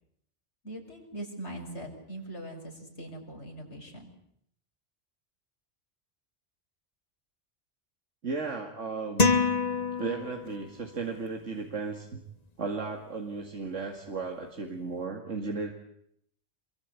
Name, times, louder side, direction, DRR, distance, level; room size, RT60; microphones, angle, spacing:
voice 1, 0.6-4.1, right 1 dB, 70° left, 1 dB, 6.1 m, -41 dB
voice 2, 8.2-9.3 10.0-12.2 12.6-15.7, right 4 dB, 85° right, 3 dB, 2.6 m, -35 dB
sound 1, 9.2-10.7, left 4 dB, 35° left, 1.3 m, -26 dB
27.5 x 22.5 x 8.4 m, 0.71 s
omnidirectional pair, 1.2 m